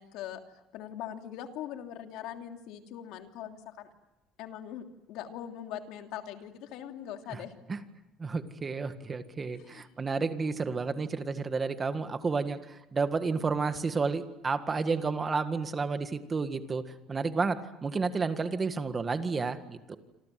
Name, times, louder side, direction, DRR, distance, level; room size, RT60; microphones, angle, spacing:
voice 1, 0.0-3.9 4.4-7.5 9.5-10.0, left 10 dB, 70° left, 4 dB, 3.0 m, -42 dB
voice 2, 8.2-16.8 17.1-20.0, right 4 dB, 20° right, 9 dB, 1.8 m, -31 dB
28.0 x 26.5 x 7.7 m, 0.97 s
cardioid pair, 160°, 0 cm